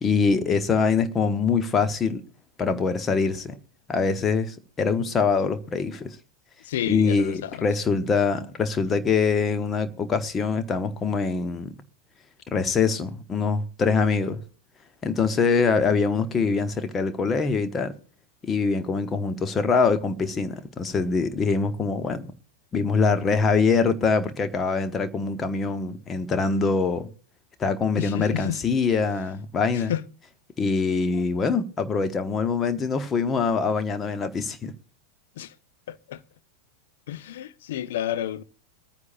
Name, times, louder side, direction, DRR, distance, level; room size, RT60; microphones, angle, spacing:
voice 1, 0.0-2.2 2.6-3.6 3.9-6.2 6.9-11.7 12.5-14.4 15.0-17.9 18.4-22.3 22.7-27.1 27.6-29.9 30.6-34.7, left 5 dB, 20° left, 1.0 m, -24 dB
voice 2, 6.6-7.7 28.0-28.6 29.7-30.0 35.4-35.5 35.9-36.2 37.1-38.4, left 12 dB, 55° left, 0.7 m, -31 dB
23.0 x 9.7 x 2.6 m
figure-of-eight pair, 90°, 0 cm